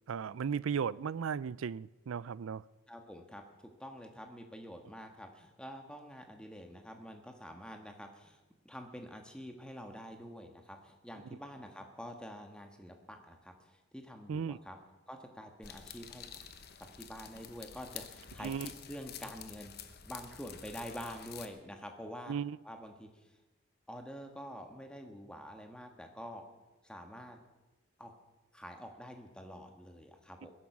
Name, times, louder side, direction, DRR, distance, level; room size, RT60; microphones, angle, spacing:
voice 1, 0.1-2.6 14.3-14.6 18.4-18.7 22.3-22.6, right 6 dB, 80° right, 0.4 m, -35 dB
voice 2, 2.9-3.4 3.8-14.8 15.1-16.3 17.0-22.3 22.6-23.3 23.9-26.4 26.8-27.4 28.0-28.2 28.5-30.5, equal, 5° left, 1.5 m, -47 dB
sound 1, 15.6-21.5, left 8 dB, 50° left, 1.0 m, -49 dB
20.5 x 11.0 x 6.0 m
head